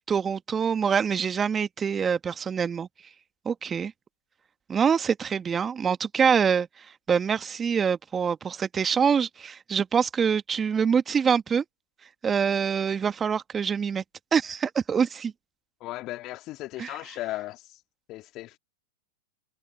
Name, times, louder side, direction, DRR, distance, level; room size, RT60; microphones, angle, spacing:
voice 1, 0.1-2.9 3.4-3.9 4.7-11.6 12.2-14.0 14.3-15.3 16.8-16.9, right 6 dB, 20° right, 1.6 m, -25 dB
voice 2, 15.8-17.8 18.1-18.6, left 17 dB, 40° left, 1.9 m, -36 dB
figure-of-eight pair, 95°, 0 cm